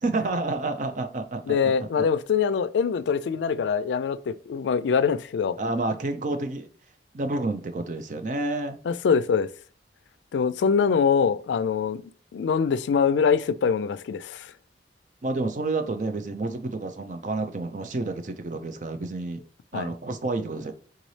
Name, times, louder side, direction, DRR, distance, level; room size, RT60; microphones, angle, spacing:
voice 1, 0.0-1.7 2.0-2.1 3.4-3.7 5.6-6.7 7.1-8.8 15.2-19.4 19.7-20.7, right 2 dB, 45° right, 0.5 m, -29 dB
voice 2, 1.5-5.6 8.9-9.5 10.3-14.5 19.7-19.9, left 6 dB, 85° left, 0.3 m, -24 dB
4.0 x 3.8 x 3.2 m
head